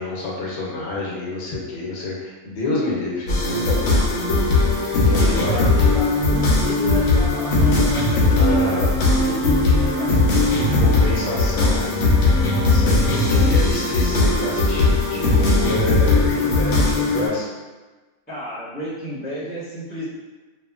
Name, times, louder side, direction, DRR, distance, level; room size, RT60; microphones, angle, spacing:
voice 1, 0.0-4.1 5.1-5.6 8.3-8.9 10.5-11.9 12.6-17.5, left 2 dB, 85° left, -4 dB, 1.1 m, -28 dB
sound 1, 3.3-17.3, left 2 dB, 65° left, 0.8 m, -18 dB
voice 2, 5.2-10.2 18.3-20.0, right 1 dB, 10° left, -13 dB, 0.9 m, -32 dB
2.8 x 2.4 x 2.3 m, 1.2 s
omnidirectional pair, 1.5 m